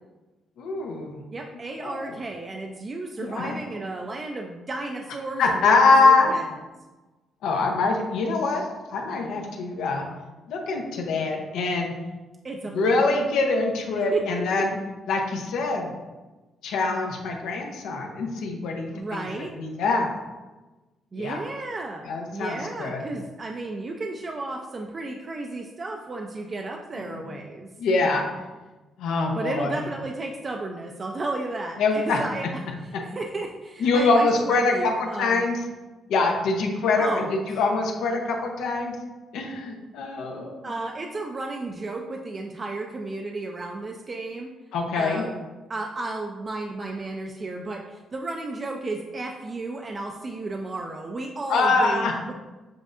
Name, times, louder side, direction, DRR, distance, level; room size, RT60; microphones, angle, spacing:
voice 1, 0.6-1.2 1.8-2.0 3.2-3.6 5.4-6.3 7.4-8.6 8.9-10.1 10.5-11.9 12.7-14.7 15.1-15.9 16.6-19.3 19.6-20.1 21.2-21.4 22.1-23.1 27.0-27.4 27.8-28.2 29.0-29.8 31.8-32.2 33.8-35.6 36.1-39.0 39.3-40.7 44.7-45.2 51.5-52.1, left 3 dB, 85° left, 1 dB, 0.7 m, -24 dB
voice 2, 1.3-6.4 12.4-12.9 14.1-14.6 18.9-19.5 21.1-27.7 29.3-32.5 33.1-35.5 37.0-37.3 40.6-44.5 44.9-52.3, right 2 dB, 35° right, 2 dB, 0.4 m, -33 dB
7.4 x 2.6 x 2.5 m, 1.2 s
cardioid pair, 90°, 0 cm